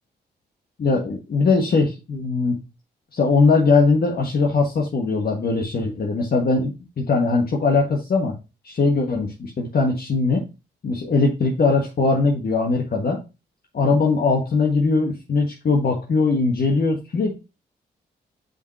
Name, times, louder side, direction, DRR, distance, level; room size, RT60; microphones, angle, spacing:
voice 1, 0.8-2.6 3.1-8.3 8.6-10.4 10.8-13.2 13.7-17.4, left 3 dB, 55° left, 0 dB, 1.5 m, -20 dB
6.5 x 5.5 x 2.7 m, 0.27 s
cardioid pair, 55°, 18 cm